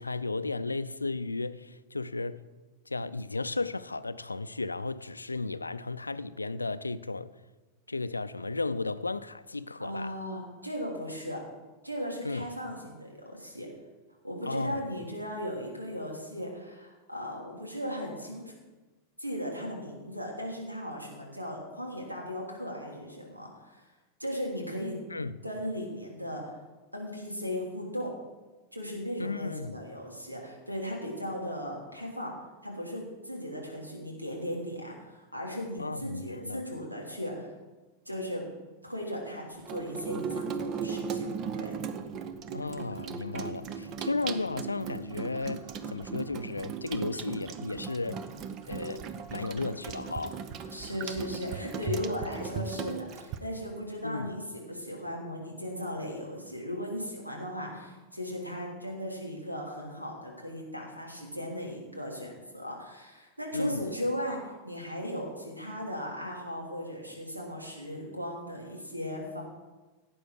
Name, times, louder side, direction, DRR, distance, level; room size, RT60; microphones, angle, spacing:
voice 1, 0.0-2.4 2.9-7.3 7.9-10.2 12.2-12.5 14.5-14.8 25.1-25.4 29.2-29.8 35.8-36.6 42.5-48.2 48.7-50.4 54.0-54.4 63.5-63.9, left 3 dB, 80° left, 0.5 m, -34 dB
voice 2, 9.8-11.4 11.8-13.7 14.2-18.5 19.2-23.9 24.2-25.0 25.4-26.6 26.9-28.1 28.7-32.3 32.6-37.5 38.0-38.4 38.8-41.3 41.5-41.7 50.7-69.4, equal, 85° right, 3.1 m, -37 dB
Water tap faucet / Sink (filling or washing), 39.6-53.4, right 6 dB, 35° right, 0.9 m, -37 dB
17.0 x 8.8 x 4.8 m
figure-of-eight pair, 90°, 0 cm